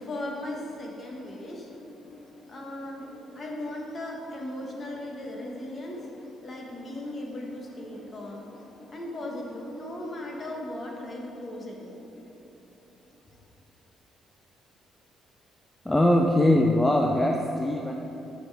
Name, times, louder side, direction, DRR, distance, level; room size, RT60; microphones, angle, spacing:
voice 1, 0.0-12.4, left 1 dB, 30° left, -1 dB, 1.0 m, -38 dB
voice 2, 15.8-17.9, left 1 dB, 10° left, 1 dB, 0.4 m, -22 dB
9.6 x 5.2 x 3.4 m, 3.0 s
cardioid pair, 160°, 0 cm